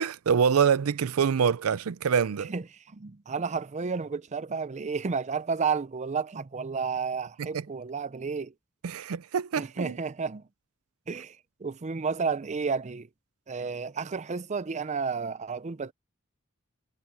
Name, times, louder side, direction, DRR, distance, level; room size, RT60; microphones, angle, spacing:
voice 1, 0.0-2.5 7.5-7.6 8.8-10.0, right 7 dB, 85° right, 0.5 m, -25 dB
voice 2, 2.9-8.5 9.6-10.5 11.1-13.1 13.5-15.9, right 5 dB, 35° right, 0.5 m, -31 dB
head